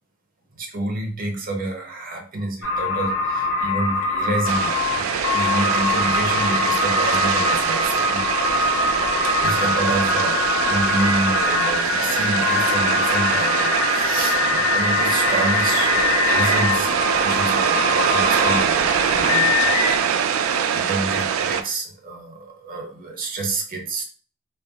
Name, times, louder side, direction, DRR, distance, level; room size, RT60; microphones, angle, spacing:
voice 1, 0.6-8.2 9.4-24.0, right 2 dB, 45° right, 2 dB, 0.7 m, -28 dB
sound 1, 2.6-20.0, left 4 dB, 85° left, 0.8 m, -23 dB
sound 2, 4.5-21.6, right 7 dB, 85° right, 0.3 m, -23 dB
2.3 x 2.0 x 3.7 m, 0.42 s
head